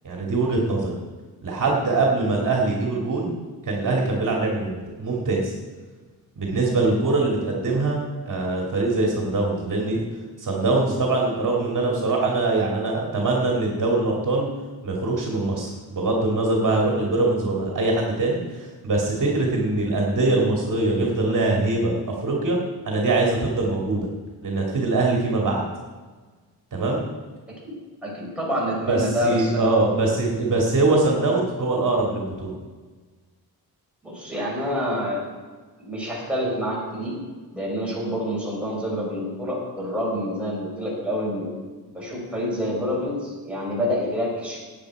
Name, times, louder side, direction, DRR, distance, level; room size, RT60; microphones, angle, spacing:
voice 1, 0.0-1.0 1.4-3.4 3.6-5.5 6.4-8.0 8.3-10.0 10.4-14.5 14.8-21.9 22.2-22.6 22.8-24.1 24.4-25.6 26.7-27.0 28.9-32.5, right 2 dB, 55° right, -1 dB, 2.4 m, -23 dB
voice 2, 28.0-30.0 34.0-35.2 35.8-37.2 37.5-41.5 41.9-44.6, equal, 5° right, -5 dB, 4.8 m, -27 dB
17.0 x 9.1 x 4.9 m, 1.4 s
wide cardioid pair, 160°, 38 cm